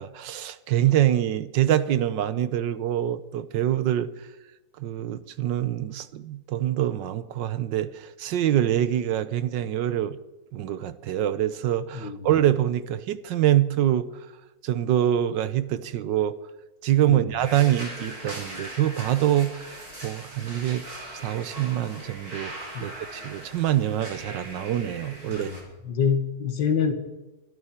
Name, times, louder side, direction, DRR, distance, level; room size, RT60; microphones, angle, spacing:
voice 1, 0.0-4.1 4.8-10.2 10.5-14.1 14.6-16.3 16.8-20.9 21.1-25.5, right 11 dB, 75° right, 1.5 m, -25 dB
sound 1, 17.4-25.6, right 1 dB, 50° right, 4.9 m, -40 dB
voice 2, 25.9-26.9, left 6 dB, 75° left, 2.2 m, -25 dB
24.0 x 12.5 x 4.3 m
omnidirectional pair, 2.0 m